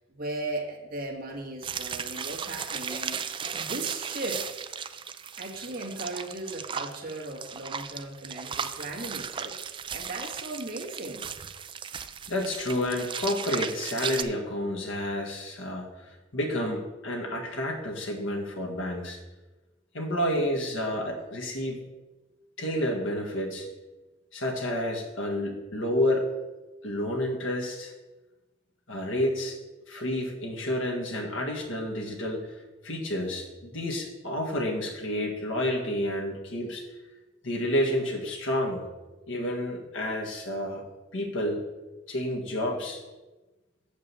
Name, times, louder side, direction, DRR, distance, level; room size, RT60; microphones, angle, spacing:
voice 1, 0.1-3.2 3.5-4.5 5.4-9.5 9.9-11.3, right 2 dB, 50° right, -1 dB, 1.8 m, -37 dB
sound 1, 1.6-14.2, right 7 dB, 25° right, 0.4 m, -36 dB
voice 2, 12.3-15.9 16.3-19.2 19.9-21.8 22.6-23.7 24.3-26.3 26.8-27.9 28.9-29.6 29.9-32.6 32.8-36.8 37.4-38.8 39.3-40.9 41.1-41.6 42.1-43.0, left 1 dB, 85° left, 0 dB, 1.7 m, -30 dB
7.8 x 5.2 x 6.9 m, 1.2 s
head